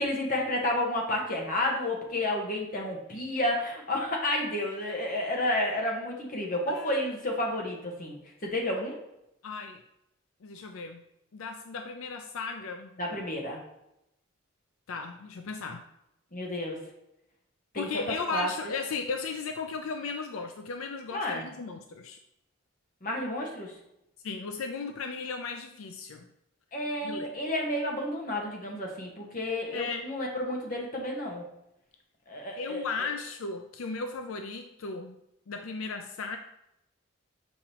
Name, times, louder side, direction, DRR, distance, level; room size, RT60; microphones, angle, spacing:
voice 1, 0.0-8.2 8.4-9.0 13.0-13.6 16.3-16.8 17.7-18.0 18.3-18.5 21.1-21.4 23.0-23.7 26.7-31.4 32.3-33.1, left 1 dB, 40° left, -1 dB, 1.3 m, -31 dB
voice 2, 6.7-7.1 9.4-9.8 10.4-11.0 11.3-13.0 14.9-15.8 17.7-22.2 24.2-26.3 27.0-27.3 29.7-30.0 32.6-35.1 35.5-36.4, left 4 dB, 80° left, 5 dB, 0.5 m, -36 dB
7.2 x 4.9 x 2.9 m, 0.83 s
head